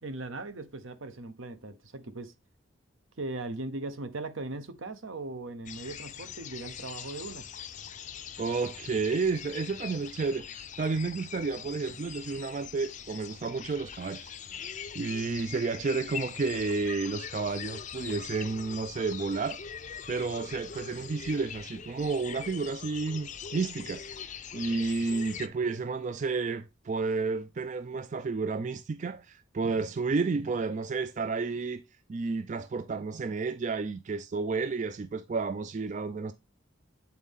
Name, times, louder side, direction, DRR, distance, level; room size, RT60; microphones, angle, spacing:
voice 1, 0.0-2.3 3.2-7.5, right 2 dB, 75° right, 1.0 m, -39 dB
sound 1, 5.7-25.5, left 8 dB, 40° left, 0.5 m, -42 dB
voice 2, 8.4-19.6 20.1-31.8 32.1-36.3, right 4 dB, 35° right, 0.3 m, -31 dB
8.4 x 4.1 x 3.7 m
head